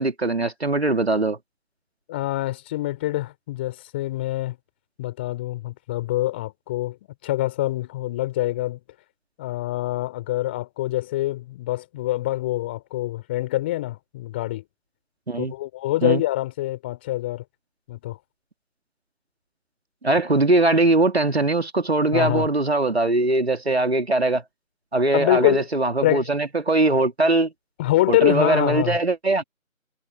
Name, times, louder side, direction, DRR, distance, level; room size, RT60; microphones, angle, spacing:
voice 1, 0.0-1.4 15.3-15.5 16.0-16.2 20.0-24.4 24.9-27.5 28.1-29.4, right 2 dB, 50° right, 2.8 m, -21 dB
voice 2, 2.1-4.6 5.0-7.0 7.2-8.8 9.4-14.6 15.4-17.4 17.9-18.2 22.1-22.5 25.1-25.7 26.0-26.3 27.8-29.0, left 16 dB, 10° left, 4.0 m, -25 dB
figure-of-eight pair, 165°, 42 cm